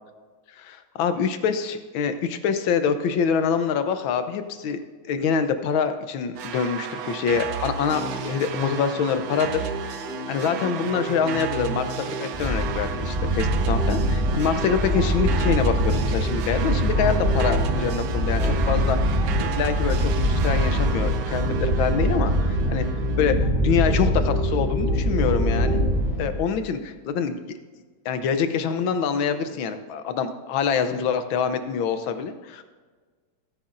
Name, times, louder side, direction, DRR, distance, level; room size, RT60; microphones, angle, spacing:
voice 1, 0.6-22.9 23.2-25.8 26.2-27.6 28.0-32.6, left 6 dB, 80° left, 9 dB, 1.5 m, -25 dB
sound 1, 6.3-23.2, right 8 dB, 80° right, 0.8 m, -34 dB
sound 2, 7.9-26.0, right 1 dB, 35° left, 2.6 m, -34 dB
sound 3, 12.3-26.6, equal, 20° right, 1.6 m, -24 dB
16.5 x 9.8 x 2.6 m, 1.4 s
omnidirectional pair, 2.2 m